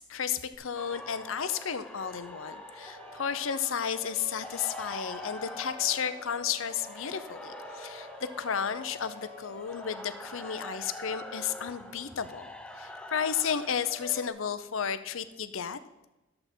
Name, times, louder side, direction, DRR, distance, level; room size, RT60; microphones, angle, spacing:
voice 1, 0.0-15.8, left 7 dB, 75° left, 12 dB, 0.6 m, -33 dB
Siren, 0.5-0.6 0.9-13.0, left 1 dB, 30° right, 0.9 m, -50 dB
sound 1, 0.7-14.3, left 1 dB, 5° left, 0.4 m, -45 dB
11.0 x 7.6 x 4.4 m, 1.0 s
head